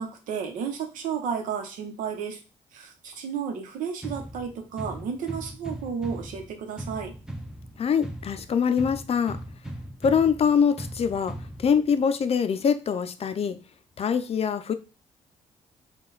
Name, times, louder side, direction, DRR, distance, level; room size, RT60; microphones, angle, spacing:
voice 1, 0.0-2.4 2.7-7.1, right 7 dB, 85° right, 0.8 m, -32 dB
sound 1, 4.0-12.0, right 1 dB, 5° right, 0.7 m, -39 dB
voice 2, 7.8-9.4 10.0-13.6 14.0-14.7, left 7 dB, 50° left, 0.5 m, -24 dB
3.8 x 2.3 x 3.9 m
cardioid pair, 70°, 13 cm